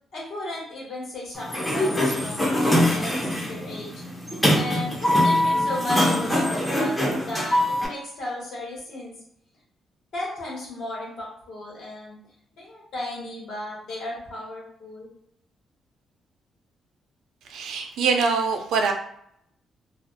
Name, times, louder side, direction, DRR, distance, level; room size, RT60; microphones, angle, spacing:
voice 1, 0.1-3.9 4.5-7.0 7.2-9.1 10.1-12.2 12.5-15.1, left 1 dB, 60° left, -5 dB, 1.2 m, -35 dB
Sliding door, 1.4-7.9, left 1 dB, 10° left, 0.5 m, -23 dB
voice 2, 17.5-18.9, right 5 dB, 90° right, 4 dB, 0.4 m, -23 dB
2.4 x 2.3 x 2.5 m, 0.70 s
cardioid pair, 175°, 0 cm